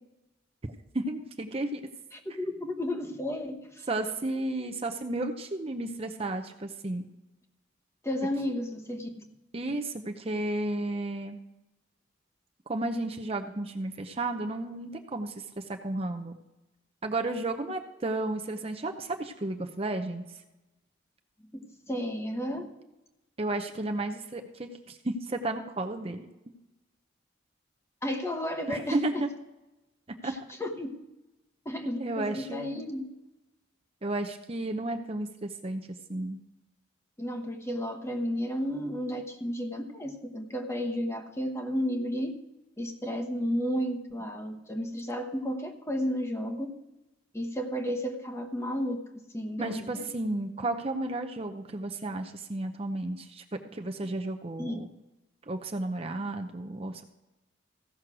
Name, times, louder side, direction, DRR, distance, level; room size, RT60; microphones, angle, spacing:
voice 1, 0.9-1.8 3.9-7.0 9.5-11.4 12.7-16.3 17.0-20.2 23.4-26.3 28.7-29.3 30.2-30.3 32.0-32.8 34.0-36.4 49.6-54.9 55.5-57.0, right 2 dB, 30° right, 5 dB, 0.7 m, -33 dB
voice 2, 2.1-3.9 8.0-9.3 21.5-22.7 28.0-29.2 30.2-31.0 31.6-33.1 37.2-42.4 42.8-46.7 47.3-49.0 49.3-50.1 54.6-54.8, equal, 15° left, 5 dB, 1.0 m, -33 dB
15.5 x 6.4 x 6.1 m, 0.99 s
head